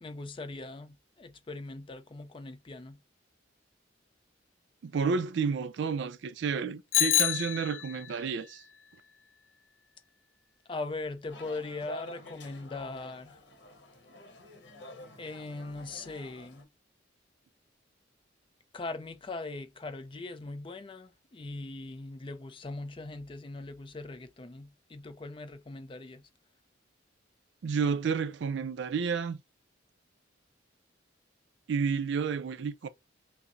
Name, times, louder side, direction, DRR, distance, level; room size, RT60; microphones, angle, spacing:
voice 1, 0.0-3.0 10.7-13.4 15.2-16.7 18.7-26.3, left 2 dB, 25° left, 0.4 m, -40 dB
voice 2, 4.8-8.6 27.6-29.4 31.7-32.9, right 5 dB, 70° right, 0.4 m, -31 dB
Bicycle bell, 6.9-8.2, left 13 dB, 90° left, 0.5 m, -27 dB
sound 1, 11.3-16.6, left 1 dB, 60° left, 0.9 m, -48 dB
5.6 x 2.0 x 2.5 m
head